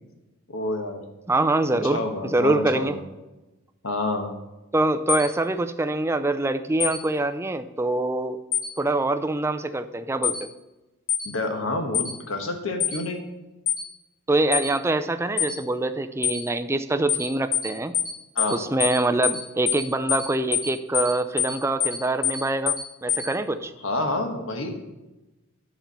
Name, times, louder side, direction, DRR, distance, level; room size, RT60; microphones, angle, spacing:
voice 1, 0.5-1.0 1.8-3.0 3.8-4.3 11.2-13.2 18.3-18.6 23.8-24.7, left 2 dB, 70° left, 4 dB, 1.2 m, -28 dB
voice 2, 1.3-3.0 4.7-8.4 8.8-10.5 14.3-17.9 18.5-23.7, right 2 dB, 10° right, 10 dB, 0.4 m, -24 dB
sound 1, 5.1-5.3 6.8-7.0 8.5-8.7 10.2-10.4 11.1-11.3 11.9-12.1 12.8-13.0 13.7-13.8 14.5-14.7 15.4-15.5 16.2-16.4 17.1-17.3 17.5-17.7 17.9-18.1 18.4-18.5 18.8-19.0 19.2-19.4 19.7-19.8 20.1-20.3 20.5-20.7 20.9-21.1 21.4-21.5 21.8-22.0 22.2-22.4 22.7-22.8 23.1-23.2, left 9 dB, 85° left, 1.7 m, -24 dB
10.0 x 4.4 x 6.7 m, 1.1 s
head